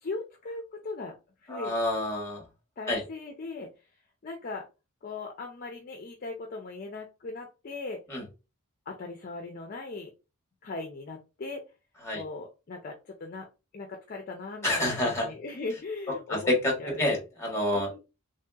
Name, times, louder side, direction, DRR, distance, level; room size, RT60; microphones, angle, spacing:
voice 1, 0.0-1.1 1.4-1.7 2.8-3.7 4.2-4.7 5.0-8.0 8.9-10.1 10.6-11.6 12.1-13.5 13.7-16.5 16.8-17.0 17.7-18.0, left 3 dB, 40° left, 3 dB, 0.4 m, -38 dB
voice 2, 1.5-2.4 2.9-3.0 8.1-8.2 12.0-12.2 14.6-15.3 16.3-16.7 17.0-17.9, left 1 dB, 10° left, -1 dB, 1.2 m, -27 dB
3.1 x 2.7 x 2.3 m, 0.29 s
head